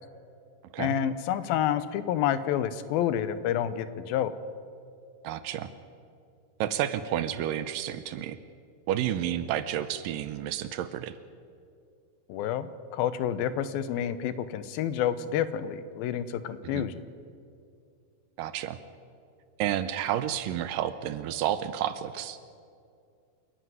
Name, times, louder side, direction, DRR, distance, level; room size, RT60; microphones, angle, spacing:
voice 1, 0.8-4.3 12.3-17.0, left 10 dB, 80° left, 14 dB, 2.6 m, -29 dB
voice 2, 5.2-5.7 6.6-8.4 8.9-11.2 16.6-16.9 18.4-18.8 19.6-22.4, right 11 dB, 75° right, 12 dB, 2.3 m, -30 dB
28.0 x 11.0 x 9.5 m, 2.4 s
omnidirectional pair, 4.2 m